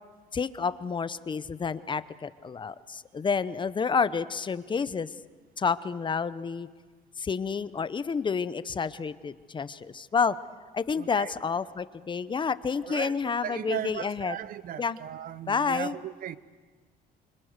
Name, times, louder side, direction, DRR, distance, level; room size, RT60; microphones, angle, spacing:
voice 1, 0.3-5.1 5.6-6.7 7.2-10.4 10.7-14.4 14.8-15.0 15.5-16.0, left 5 dB, 30° left, 0.8 m, -29 dB
voice 2, 11.0-11.3 12.8-16.4, right 10 dB, 55° right, 0.9 m, -37 dB
29.5 x 26.0 x 6.7 m
cardioid pair, 110°, 17 cm